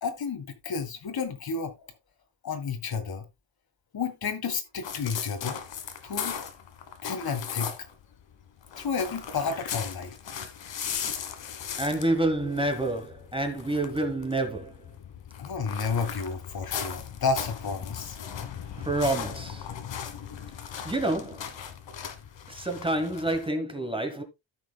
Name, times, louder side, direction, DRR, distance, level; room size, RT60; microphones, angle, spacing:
voice 1, 0.0-1.9 2.4-3.2 3.9-5.6 6.0-6.4 7.0-7.7 8.8-10.1 15.4-18.2, left 5 dB, 50° left, 1.7 m, -31 dB
sound 1, 4.8-8.0 8.3-23.5, left 8 dB, 75° left, 1.5 m, -38 dB
voice 2, 11.8-14.8 18.8-19.7 20.0-20.1 20.8-21.5 22.5-24.2, right 2 dB, 10° right, 1.2 m, -28 dB
14.0 x 6.1 x 2.3 m
wide cardioid pair, 145°, 46 cm